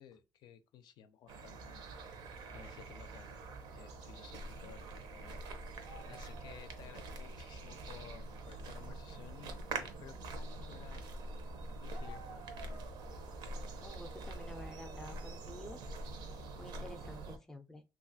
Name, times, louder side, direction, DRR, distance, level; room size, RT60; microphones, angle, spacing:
voice 1, 0.0-1.8 2.5-3.5 3.7-5.4 6.1-11.1 11.8-12.9, left 9 dB, 75° left, 0.4 m, -56 dB
sound 1, 1.3-17.4, right 2 dB, 80° right, 0.6 m, -45 dB
voice 2, 13.8-15.8 16.6-17.8, left 1 dB, 5° left, 0.3 m, -50 dB
3.1 x 2.3 x 2.6 m
cardioid pair, 160°, 7 cm